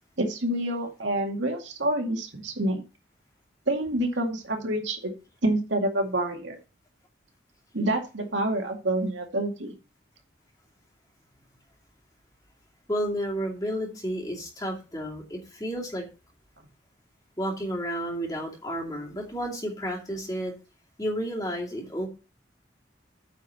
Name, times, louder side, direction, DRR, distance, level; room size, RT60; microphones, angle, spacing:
voice 1, 0.2-2.8 3.7-5.1 5.4-6.6 7.7-9.7, right 1 dB, 80° right, 3 dB, 2.2 m, -27 dB
voice 2, 12.9-16.0 17.4-20.5 21.0-22.1, equal, 20° left, -1 dB, 2.5 m, -31 dB
9.1 x 4.6 x 6.8 m, 0.31 s
head